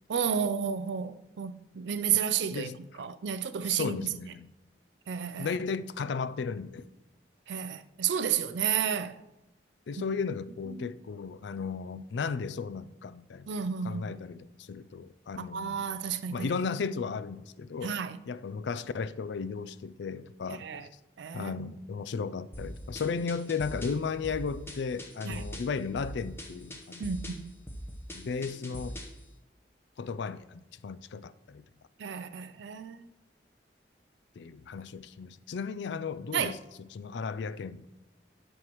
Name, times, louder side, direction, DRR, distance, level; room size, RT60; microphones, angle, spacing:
voice 1, 0.1-2.7 3.0-4.1 5.1-5.5 7.5-9.2 10.0-10.1 10.7-10.9 13.5-14.1 15.5-16.5 17.8-18.2 20.5-20.9 21.2-21.7 25.2-25.4 27.0-27.5 32.0-33.1 36.3-36.5, right 8 dB, 75° right, 0.4 m, -32 dB
voice 2, 3.6-4.5 5.4-6.8 9.9-13.5 13.8-15.9 16.3-20.9 21.3-27.1 28.1-29.0 30.0-31.6 34.4-36.6 36.9-37.9, left 5 dB, 70° left, 0.4 m, -35 dB
sound 1, 22.5-29.2, equal, 15° left, 0.8 m, -42 dB
10.5 x 6.4 x 3.0 m
head